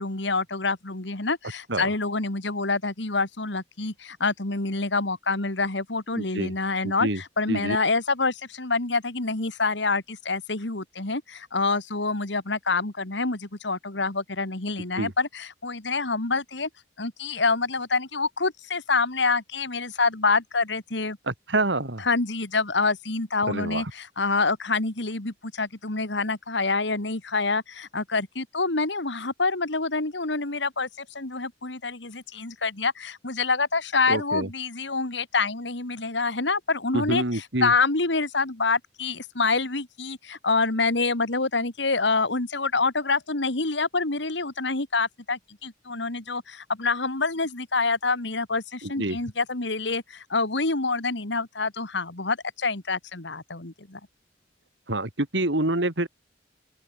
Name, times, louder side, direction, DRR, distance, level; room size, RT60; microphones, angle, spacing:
voice 1, 0.0-16.7 17.0-21.2 22.0-54.0, left 3 dB, 70° left, 2.4 m, -27 dB
voice 2, 6.2-6.5 6.8-7.2 7.5-7.8 15.0-15.1 21.3-22.1 23.5-23.9 34.1-34.5 36.9-37.7 48.8-49.2 54.9-56.1, right 2 dB, 70° right, 3.1 m, -27 dB
open air
head